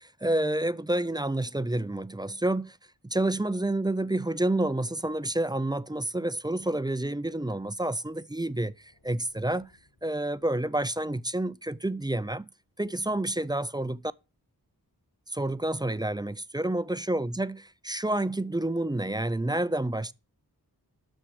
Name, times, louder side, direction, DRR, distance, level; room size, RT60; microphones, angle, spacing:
voice 1, 0.2-2.8 3.0-9.7 10.0-12.5 12.8-14.0 15.3-20.1, right 1 dB, 10° right, 0.4 m, -29 dB
sound 1, 8.3-11.2, left 2 dB, 70° left, 5.2 m, -66 dB
12.5 x 4.4 x 6.4 m
wide cardioid pair, 65°, 38 cm